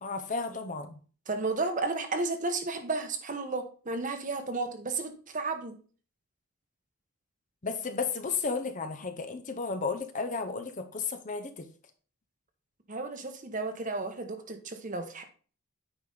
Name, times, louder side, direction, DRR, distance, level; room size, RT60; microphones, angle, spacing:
voice 1, 0.0-1.0 7.6-11.7, left 4 dB, 35° left, 7 dB, 0.7 m, -33 dB
voice 2, 1.3-5.7 12.9-15.2, right 3 dB, 35° right, 7 dB, 1.0 m, -33 dB
9.1 x 4.9 x 3.9 m, 0.39 s
head